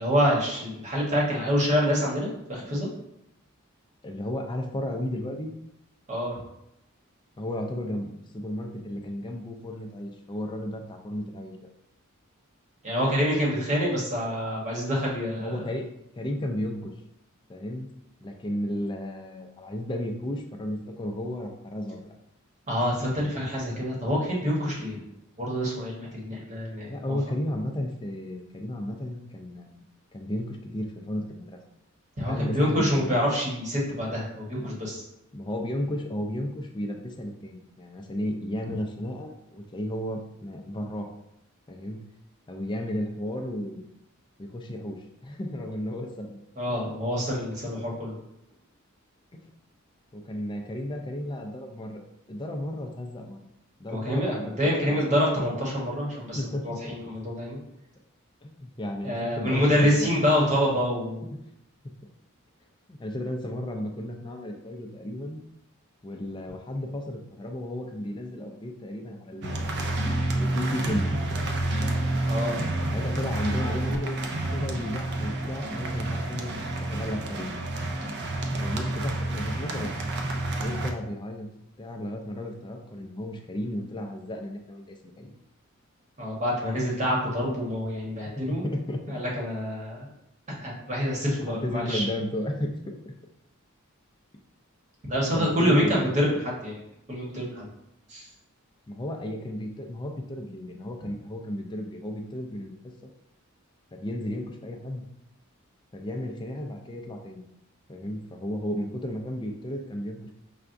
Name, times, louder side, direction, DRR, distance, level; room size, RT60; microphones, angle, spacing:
voice 1, 0.0-2.9 6.1-6.4 12.8-15.5 22.7-25.0 25.4-27.2 32.2-35.0 46.6-48.2 53.9-57.6 59.0-61.3 72.3-72.6 86.2-88.6 89.1-90.1 90.5-92.0 95.1-96.8 97.1-97.7 98.1-98.3, equal, 35° right, -4 dB, 1.1 m, -26 dB
voice 2, 4.0-5.5 7.4-11.6 15.4-16.9 17.5-17.9 18.2-22.1 26.9-29.8 30.1-31.6 32.3-33.1 35.3-41.1 41.7-42.0 42.5-43.8 44.4-46.4 46.7-46.8 49.3-49.4 50.1-52.0 52.3-53.4 53.8-55.2 56.3-56.9 58.4-60.1 62.9-65.4 66.0-71.1 72.9-77.6 78.6-80.0 80.6-81.5 81.8-85.3 88.4-89.0 91.4-93.0 95.3-96.1 98.9-102.9 103.9-105.0 105.9-107.4 107.9-110.4, left 1 dB, 20° left, 3 dB, 0.4 m, -34 dB
sound 1, 69.4-80.9, right 1 dB, 50° right, 0.5 m, -29 dB
5.6 x 2.3 x 2.5 m, 0.81 s
head